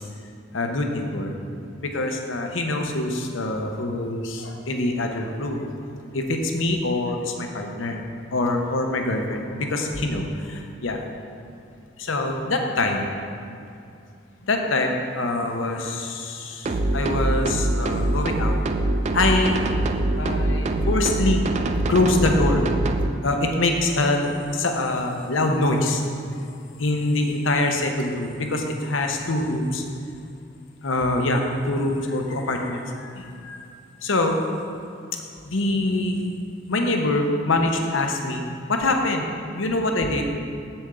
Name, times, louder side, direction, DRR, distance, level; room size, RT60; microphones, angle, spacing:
voice 1, 0.5-1.4 1.8-5.7 6.1-8.0 8.3-11.0 12.0-13.1 14.4-18.5 19.1-19.6 20.2-21.4 21.9-22.7 23.2-26.0 26.8-29.8 30.8-33.7 34.0-34.4 35.4-36.2 36.7-38.4 38.7-39.3 39.5-40.2, left 2 dB, 85° left, 3 dB, 0.8 m, -24 dB
sound 1, 16.6-23.1, right 1 dB, 35° right, 0.3 m, -23 dB
7.8 x 7.0 x 3.7 m, 2.4 s
head